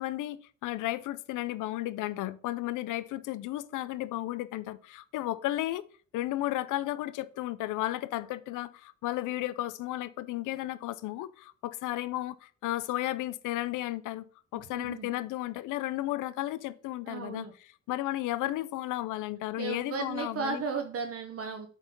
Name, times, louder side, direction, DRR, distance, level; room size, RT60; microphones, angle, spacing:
voice 1, 0.0-5.8 6.1-14.3 14.5-20.6, left 15 dB, 90° left, 0.6 m, -34 dB
voice 2, 14.7-15.1 17.1-17.5 19.6-21.7, right 5 dB, 50° right, 1.0 m, -35 dB
8.1 x 4.1 x 5.2 m
cardioid pair, 90°, 30 cm